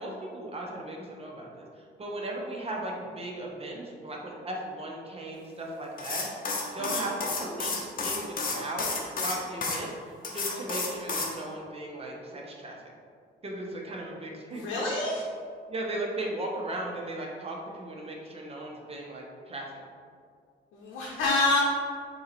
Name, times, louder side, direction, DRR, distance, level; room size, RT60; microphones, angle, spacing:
voice 1, 0.0-6.3 6.7-9.9 10.3-12.8 13.4-14.7 15.7-19.8, right 1 dB, 30° right, -1 dB, 0.8 m, -37 dB
sound 1, 6.0-9.8 10.2-11.3, left 3 dB, 45° left, 0.8 m, -31 dB
voice 2, 14.5-15.2 20.7-21.6, left 3 dB, 90° left, -5 dB, 0.7 m, -27 dB
3.8 x 2.9 x 4.1 m, 2.2 s
cardioid pair, 90°, 20 cm